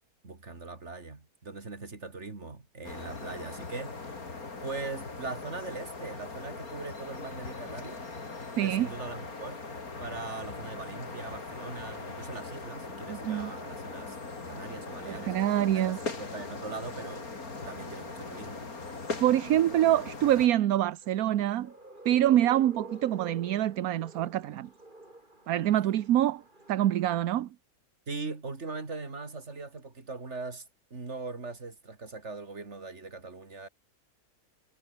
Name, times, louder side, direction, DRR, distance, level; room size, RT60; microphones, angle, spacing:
voice 1, 0.2-4.3 4.6-8.0 8.6-9.7 10.0-14.2 14.5-17.2 17.6-18.7 28.1-33.7, right 3 dB, 45° right, 3.2 m, -41 dB
sound 1, 2.8-20.5, left 3 dB, 65° left, 3.9 m, -40 dB
voice 2, 8.6-8.9 13.1-13.5 15.1-16.0 19.2-21.7 22.0-24.7 25.5-26.4 26.7-27.5, right 12 dB, 70° right, 1.2 m, -25 dB
sound 2, 21.0-27.2, right 1 dB, 30° right, 5.3 m, -49 dB
omnidirectional pair, 1.6 m